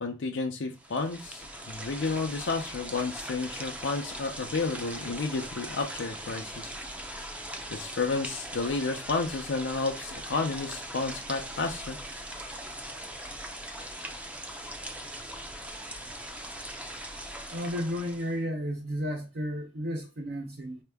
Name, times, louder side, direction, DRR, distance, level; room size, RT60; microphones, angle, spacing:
voice 1, 0.0-6.7 7.7-12.0, left 3 dB, 85° left, 0.6 m, -31 dB
sound 1, 0.7-18.4, right 1 dB, 5° right, 0.5 m, -40 dB
voice 2, 17.5-20.8, equal, 60° right, 0.6 m, -33 dB
4.3 x 2.8 x 3.4 m
head